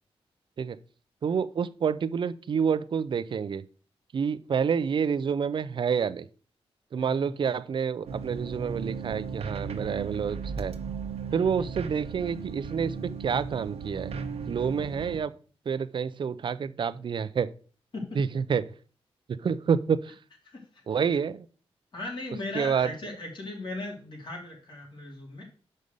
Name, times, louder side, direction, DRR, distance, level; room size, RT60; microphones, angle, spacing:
voice 1, 1.2-3.7 4.1-6.3 6.9-10.8 11.3-14.1 14.5-15.3 15.7-17.5 18.2-18.7 19.3-20.2 20.9-21.5 22.5-22.9, right 6 dB, 50° right, 14 dB, 0.5 m, -28 dB
sound 1, 8.1-15.2, right 5 dB, 80° right, 1.0 m, -36 dB
voice 2, 11.3-11.7 14.7-14.8 17.9-18.2 20.5-20.8 21.9-25.4, left 2 dB, 50° left, 0 dB, 3.1 m, -38 dB
6.4 x 5.4 x 6.5 m, 0.40 s
wide cardioid pair, 135°, 10 cm